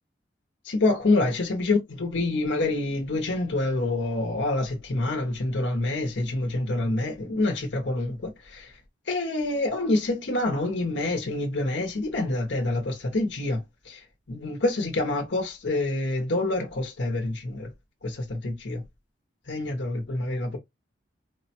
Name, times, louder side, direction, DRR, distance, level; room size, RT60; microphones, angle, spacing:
voice 1, 0.6-8.7 9.1-14.0 14.3-17.7 18.0-18.8 19.5-20.6, left 2 dB, 90° left, 0.8 m, -27 dB
4.7 x 2.1 x 2.8 m
head